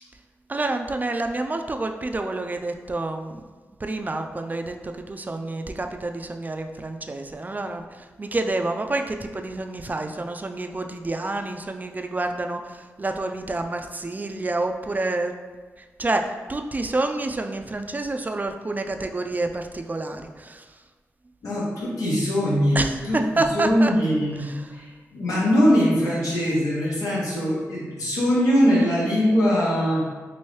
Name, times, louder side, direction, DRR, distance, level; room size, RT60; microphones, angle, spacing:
voice 1, 0.5-3.5 3.8-15.4 15.8-20.7 22.8-23.9 24.4-24.7, right 2 dB, 30° right, 5 dB, 0.4 m, -28 dB
voice 2, 21.4-23.2 23.5-30.1, equal, 85° left, -7 dB, 1.0 m, -22 dB
3.0 x 2.6 x 3.1 m, 1.4 s
supercardioid pair, 40°, 6 cm